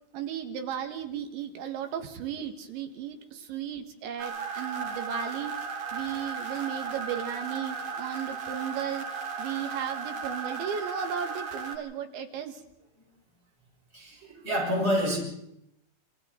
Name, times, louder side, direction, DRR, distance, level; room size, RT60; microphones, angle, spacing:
voice 1, 0.1-5.5 5.9-9.1 9.4-12.6, right 8 dB, 75° right, 6 dB, 3.8 m, -35 dB
sound 1, 4.2-11.7, right 5 dB, 45° right, 2.8 m, -36 dB
voice 2, 13.9-15.2, equal, 15° right, -3 dB, 6.7 m, -27 dB
28.0 x 26.0 x 3.9 m, 0.76 s
omnidirectional pair, 5.6 m